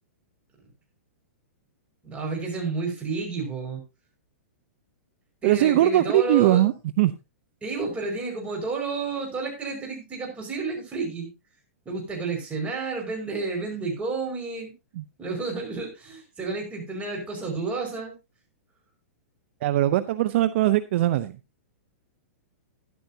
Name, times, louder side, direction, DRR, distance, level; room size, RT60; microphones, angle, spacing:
voice 1, 2.0-3.8 5.4-6.6 7.6-11.3 11.9-14.7 15.2-18.2, right 4 dB, 15° right, 0 dB, 5.5 m, -31 dB
voice 2, 5.4-7.1 15.0-15.1 19.6-21.4, right 14 dB, 55° right, 13 dB, 0.7 m, -21 dB
13.0 x 11.5 x 2.8 m, 0.26 s
hypercardioid pair, 135°, 8 cm